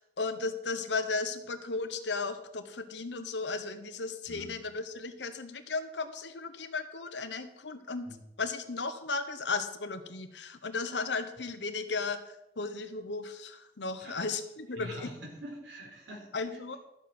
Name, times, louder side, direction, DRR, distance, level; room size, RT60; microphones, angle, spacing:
voice 1, 0.0-8.1 8.4-12.2 12.6-15.1 16.3-16.8, left 4 dB, 75° left, 9 dB, 1.1 m, -35 dB
voice 2, 14.7-16.3, equal, 70° right, 0 dB, 4.4 m, -44 dB
13.0 x 7.4 x 6.1 m, 0.86 s
head